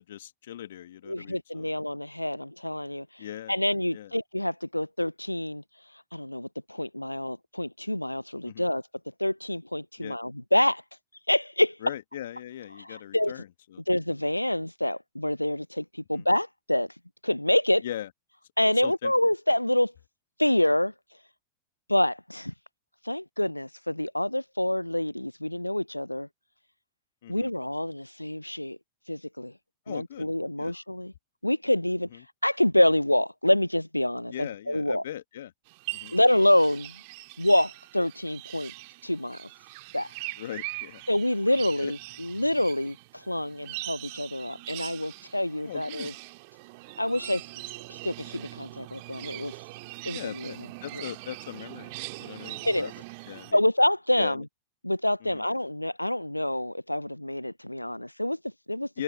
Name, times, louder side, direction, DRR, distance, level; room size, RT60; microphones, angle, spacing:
voice 1, 0.0-1.7 3.2-3.5 3.9-4.1 8.4-8.7 10.0-10.2 11.8-13.8 16.1-16.3 17.8-18.1 18.8-19.1 27.2-27.5 29.9-30.3 30.6-30.7 32.1-32.2 34.3-35.5 35.9-36.2 40.4-41.0 41.8-41.9 45.6-46.1 50.1-51.9 52.2-52.9 53.3-53.6 54.2-54.4 55.2-55.4 58.9-59.0, left 11 dB, 60° left, 1.9 m, -39 dB
voice 2, 1.1-8.8 9.2-10.8 11.3-11.9 12.7-13.4 13.9-17.0 17.2-17.8 18.6-19.9 20.4-20.9 21.9-22.5 23.0-26.3 27.3-28.8 29.1-29.5 29.9-31.1 31.4-35.0 36.1-36.9 37.4-38.7 39.0-39.5 39.9-40.1 41.1-46.1 47.0-47.4 47.9-49.7 50.1-50.5 50.9-51.1 52.6-52.9 53.5-54.4 54.8-58.9, left 1 dB, 85° left, 0.5 m, -27 dB
sound 1, 35.7-53.5, right 27 dB, 50° right, 2.2 m, -42 dB
figure-of-eight pair, 90°, 0 cm